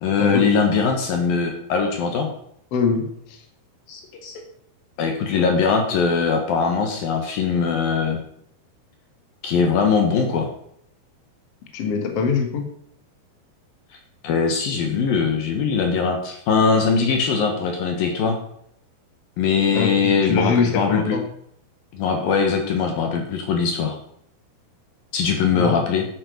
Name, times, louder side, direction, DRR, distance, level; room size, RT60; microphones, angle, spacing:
voice 1, 0.0-2.3 3.9-4.4 5.0-8.2 9.4-10.5 14.2-18.4 19.4-21.2 21.9-24.0 25.1-26.1, left 5 dB, 65° left, 4 dB, 2.9 m, -21 dB
voice 2, 2.7-3.4 11.7-12.7 19.7-21.2 25.6-25.7, left 5 dB, 45° left, 4 dB, 2.2 m, -23 dB
11.0 x 8.8 x 6.7 m, 0.70 s
omnidirectional pair, 4.9 m